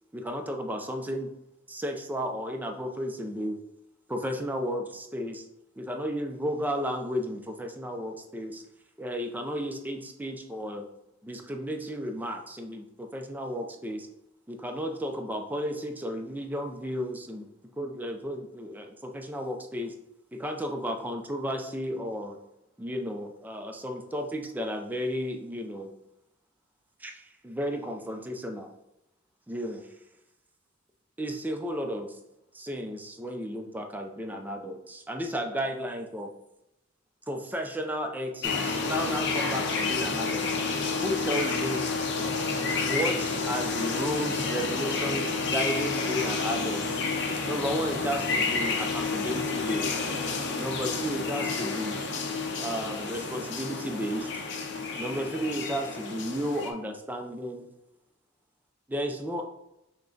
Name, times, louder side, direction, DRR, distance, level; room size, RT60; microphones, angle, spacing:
voice 1, 0.1-1.3 1.7-3.6 4.1-5.4 5.8-8.6 9.0-10.9 11.2-14.1 14.5-17.5 17.8-19.9 20.3-22.4 22.8-25.9 27.0-28.7 29.5-29.9 31.2-32.2 32.5-36.3 37.3-40.7 41.0-41.9 42.8-47.0 47.4-50.0 50.6-52.0 52.6-54.3 55.0-57.7 58.9-59.5, equal, 10° right, 4 dB, 0.4 m, -33 dB
sound 1, 38.4-56.7, left 4 dB, 60° left, 0.6 m, -30 dB
5.9 x 2.2 x 3.8 m, 0.88 s
head